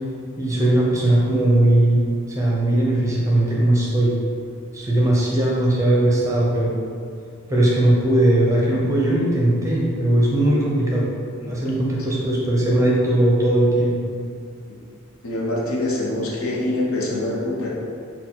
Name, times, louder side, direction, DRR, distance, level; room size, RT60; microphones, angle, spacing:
voice 1, 0.4-4.2 4.7-6.8 7.5-11.1 11.5-14.1, right 1 dB, 15° right, -5 dB, 0.6 m, -19 dB
voice 2, 15.2-17.7, left 1 dB, 70° left, -3 dB, 0.7 m, -25 dB
4.2 x 2.2 x 3.8 m, 2.3 s
head